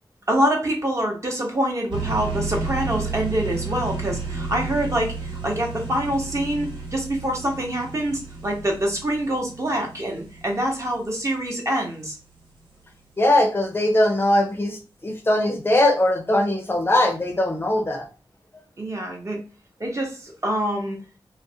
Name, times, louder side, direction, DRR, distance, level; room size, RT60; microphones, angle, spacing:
voice 1, 0.3-12.2 18.8-19.4 19.8-21.0, right 1 dB, 35° right, 0 dB, 0.8 m, -25 dB
sound 1, 1.9-11.4, right 4 dB, 75° right, 1.0 m, -32 dB
voice 2, 13.2-18.1, left 1 dB, 25° left, 3 dB, 0.5 m, -20 dB
2.4 x 2.0 x 2.6 m, 0.33 s
wide cardioid pair, 75°, 9 cm